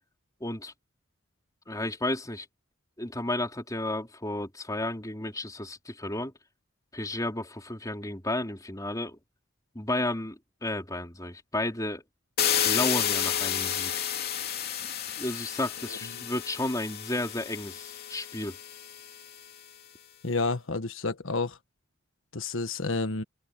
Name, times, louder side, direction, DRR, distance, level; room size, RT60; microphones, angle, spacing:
voice 1, 0.4-0.7 1.7-2.5 3.0-6.3 6.9-9.2 9.7-12.0 12.6-14.1 15.2-18.6, left 1 dB, 20° left, 4.0 m, -32 dB
sound 1, 12.4-19.2, left 9 dB, 50° left, 2.7 m, -31 dB
voice 2, 15.9-16.2 20.2-21.6 22.3-23.2, left 3 dB, 75° left, 1.5 m, -30 dB
open air
head